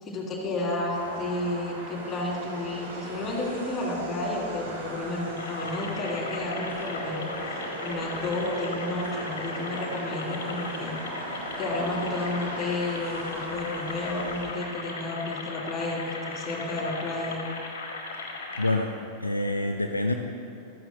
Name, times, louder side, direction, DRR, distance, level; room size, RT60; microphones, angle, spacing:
voice 1, 0.0-7.3 7.8-10.9 11.3-17.4, left 2 dB, 25° left, -3 dB, 2.7 m, -31 dB
sound 1, 0.9-14.4, right 1 dB, 65° right, 2.6 m, -38 dB
sound 2, 5.4-18.8, left 3 dB, 60° left, 1.5 m, -38 dB
voice 2, 18.6-18.9 19.2-20.1, left 2 dB, 85° left, 3 dB, 0.5 m, -26 dB
14.5 x 12.0 x 2.2 m, 2.6 s
figure-of-eight pair, 90°, 0 cm